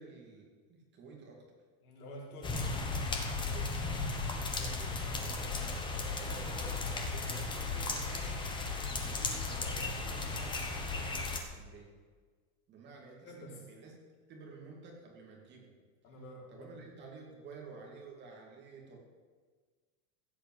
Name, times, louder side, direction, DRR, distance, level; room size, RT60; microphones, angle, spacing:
voice 1, 0.0-1.4 3.5-5.0 6.0-8.5 8.9-11.9 12.7-14.0 14.3-15.7 16.5-19.0, right 3 dB, 25° right, -1 dB, 2.6 m, -51 dB
voice 2, 1.8-2.9 5.2-5.8 13.2-13.7 16.0-16.8, equal, 75° left, -3 dB, 5.5 m, -49 dB
sound 1, 2.4-11.4, left 3 dB, 10° left, 1.0 m, -35 dB
15.5 x 8.5 x 7.9 m, 1.5 s
supercardioid pair, 175°, 45 cm